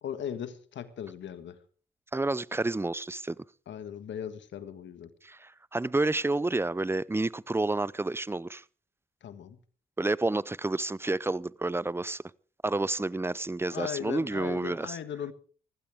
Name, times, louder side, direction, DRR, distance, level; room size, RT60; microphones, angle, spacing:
voice 1, 0.0-1.6 3.7-5.1 9.2-9.6 13.7-15.3, left 9 dB, 75° left, 1.6 m, -38 dB
voice 2, 2.1-3.4 5.2-8.6 10.0-12.2 12.6-15.0, right 2 dB, 10° right, 0.6 m, -30 dB
19.0 x 15.5 x 3.6 m
supercardioid pair, 50°, 19 cm